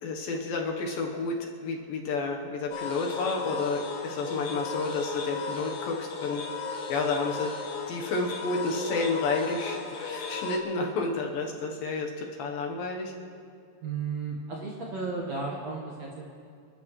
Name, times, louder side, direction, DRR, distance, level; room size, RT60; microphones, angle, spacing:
voice 1, 0.0-7.5 7.9-13.1, left 3 dB, 70° left, 1 dB, 2.6 m, -31 dB
sound 1, 2.7-10.6, left 5 dB, 85° left, 3.6 m, -35 dB
voice 2, 13.8-16.2, right 4 dB, 60° right, -3 dB, 1.9 m, -34 dB
29.0 x 12.5 x 3.1 m, 2.3 s
omnidirectional pair, 4.7 m